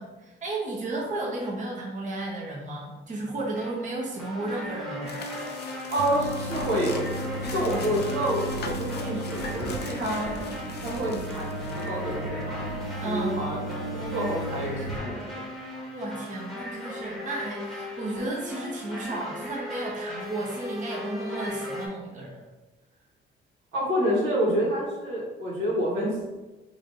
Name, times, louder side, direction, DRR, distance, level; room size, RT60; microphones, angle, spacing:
voice 1, 0.0-5.2 7.4-7.9 13.0-13.4 15.9-22.4, right 2 dB, 40° right, -3 dB, 0.9 m, -33 dB
sound 1, 3.5-21.9, left 1 dB, ahead, 1.0 m, -37 dB
sound 2, 5.1-11.9, left 4 dB, 55° left, 0.6 m, -43 dB
voice 2, 5.9-7.0 7.5-10.3 10.8-12.6 13.0-13.6 13.9-15.2 23.7-26.4, equal, 85° right, -5 dB, 1.4 m, -28 dB
sound 3, 6.0-15.0, right 1 dB, 60° right, 0.5 m, -36 dB
3.1 x 2.6 x 4.1 m, 1.1 s
cardioid pair, 90°, 20 cm